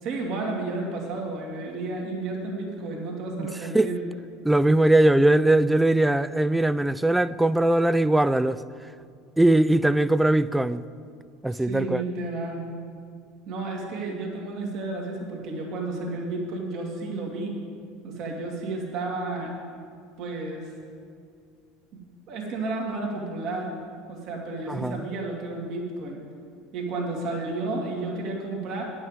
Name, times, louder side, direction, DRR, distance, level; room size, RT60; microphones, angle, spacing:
voice 1, 0.0-4.0 11.5-12.6 13.5-17.6 18.0-19.5 20.2-20.7 21.9-22.0 22.3-23.7 24.1-26.2 26.7-28.8, right 2 dB, 60° right, 2.2 m, -32 dB
voice 2, 4.4-8.6 9.4-10.8 11.4-12.0 24.7-25.0, right 1 dB, 5° right, 0.3 m, -20 dB
9.5 x 6.2 x 7.9 m
supercardioid pair, 100°, 0 cm